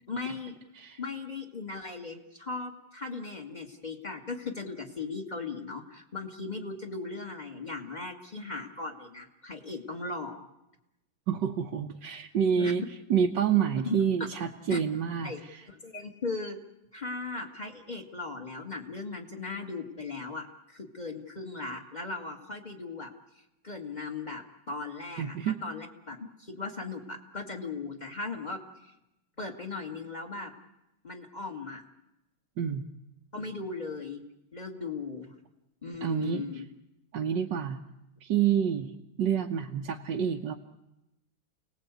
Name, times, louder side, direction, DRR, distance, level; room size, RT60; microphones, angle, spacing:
voice 1, 0.1-0.5 1.0-10.5 12.6-12.7 13.5-14.0 14.7-14.8 15.2-15.4 15.7-16.6 16.9-23.1 23.4-28.9 29.4-30.5 31.0-31.8 33.3-34.2 34.5-35.3 35.8-36.7, left 3 dB, 20° left, 4 dB, 2.0 m, -38 dB
voice 2, 11.3-12.8 13.1-15.6 25.2-25.6 32.6-32.8 36.0-36.5 37.1-37.8 38.2-38.9 39.2-40.6, right 8 dB, 65° right, 1 dB, 1.7 m, -28 dB
29.5 x 19.5 x 8.3 m, 0.93 s
omnidirectional pair, 2.2 m